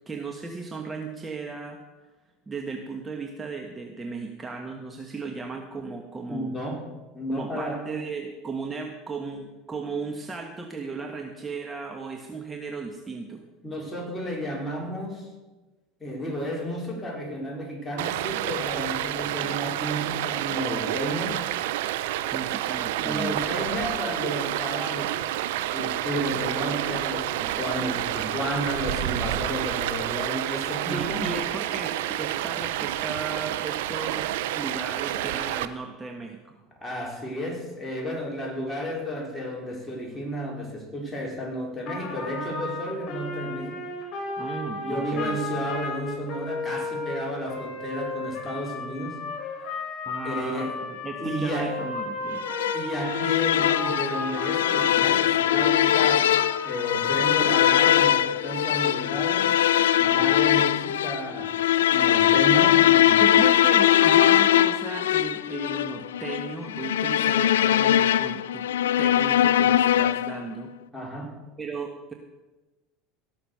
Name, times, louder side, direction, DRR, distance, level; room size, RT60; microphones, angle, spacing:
voice 1, 0.1-1.8 2.5-6.6 7.3-13.4 22.3-23.4 30.8-36.6 44.4-45.4 50.1-52.4 63.2-68.6 69.0-70.7 71.6-72.1, right 4 dB, 20° right, 3 dB, 1.4 m, -35 dB
voice 2, 6.3-6.8 7.1-7.8 13.6-15.3 16.0-21.4 23.0-25.2 25.7-31.3 36.8-43.8 44.8-49.2 49.7-49.8 50.2-50.7 51.2-51.8 52.7-56.4 56.6-59.5 60.0-61.6 61.9-63.4 70.9-71.4, equal, 10° left, -2 dB, 4.6 m, -32 dB
Stream, 18.0-35.7, right 13 dB, 80° right, 0.7 m, -29 dB
Trumpet, 41.9-54.9 55.4-57.9, left 2 dB, 45° left, 4.6 m, -34 dB
sound 1, 52.4-70.4, left 11 dB, 90° left, 0.3 m, -21 dB
17.0 x 6.7 x 6.7 m, 1.2 s
hypercardioid pair, 95°, 0 cm